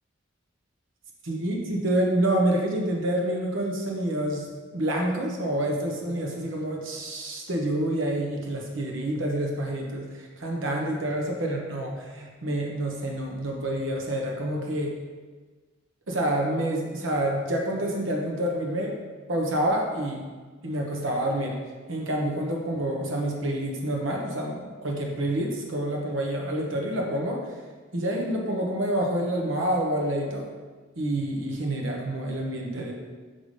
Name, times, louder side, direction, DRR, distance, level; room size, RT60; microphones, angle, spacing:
voice 1, 1.2-14.9 16.1-19.0 19.3-20.2 20.6-21.6 21.9-27.4 27.9-30.5 31.0-32.9, right 1 dB, 85° right, 0 dB, 1.1 m, -28 dB
5.9 x 5.4 x 3.3 m, 1.4 s
head